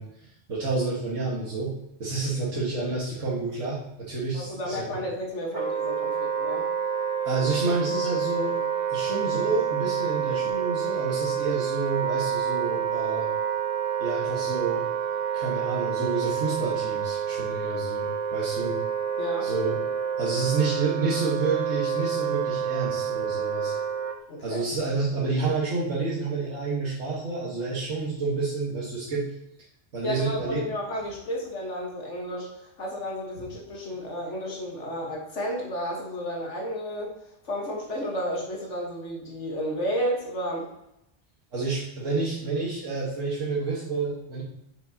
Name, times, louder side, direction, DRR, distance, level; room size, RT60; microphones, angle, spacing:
voice 1, 0.0-1.7 2.0-4.9 7.2-8.6 8.9-13.3 14.0-14.8 15.3-18.8 19.4-19.7 20.2-23.7 24.4-29.3 29.9-30.7 33.4-33.5 41.5-44.4, right 3 dB, 80° right, -6 dB, 1.8 m, -29 dB
voice 2, 4.3-6.7 19.2-19.5 24.3-24.6 30.0-37.1 37.4-40.7, equal, 70° left, -1 dB, 1.7 m, -32 dB
Wind instrument woodwind instrument, 5.5-24.2, right 7 dB, 35° right, 0.6 m, -28 dB
6.9 x 6.4 x 2.8 m, 0.80 s
omnidirectional pair, 1.3 m